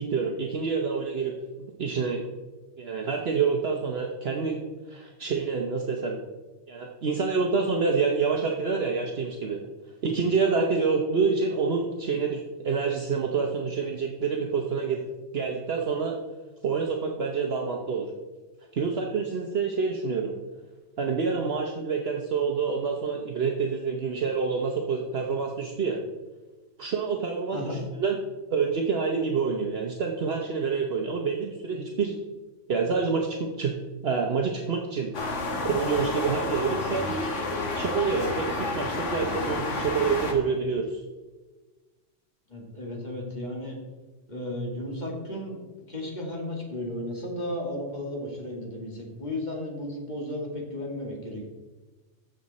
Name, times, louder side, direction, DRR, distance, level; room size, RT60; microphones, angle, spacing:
voice 1, 0.0-1.4 1.8-2.2 2.8-4.6 4.9-6.2 6.7-9.6 10.0-15.0 15.3-16.2 16.6-18.1 18.7-20.3 21.0-26.0 26.8-28.2 28.5-32.2 32.7-33.7 34.0-35.1 35.6-37.1 37.7-41.0, right 5 dB, 60° right, 1 dB, 1.2 m, -27 dB
sound 1, 35.1-40.3, left 2 dB, 80° left, 1.8 m, -30 dB
voice 2, 42.5-43.8 44.3-45.6 45.9-51.5, left 1 dB, 35° left, -1 dB, 2.3 m, -34 dB
14.0 x 6.6 x 4.2 m, 1.2 s
omnidirectional pair, 1.2 m